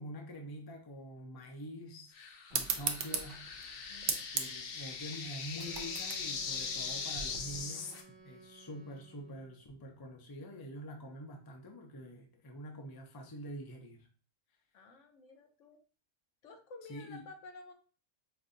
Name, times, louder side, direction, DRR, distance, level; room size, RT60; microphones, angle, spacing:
voice 1, 0.0-2.1 2.5-3.4 4.3-7.9 8.2-14.0 16.9-17.2, equal, 30° left, 2 dB, 0.5 m, -46 dB
sound 1, 2.1-8.0, left 5 dB, 55° left, 0.7 m, -41 dB
sound 2, 2.5-7.6, right 6 dB, 75° right, 0.9 m, -38 dB
voice 2, 3.9-4.2 14.7-15.8 16.4-17.7, left 3 dB, 75° left, 5 dB, 1.1 m, -52 dB
Wind instrument woodwind instrument, 5.5-9.6, right 4 dB, 40° right, 1.0 m, -57 dB
5.1 x 2.6 x 2.6 m, 0.39 s
omnidirectional pair, 1.3 m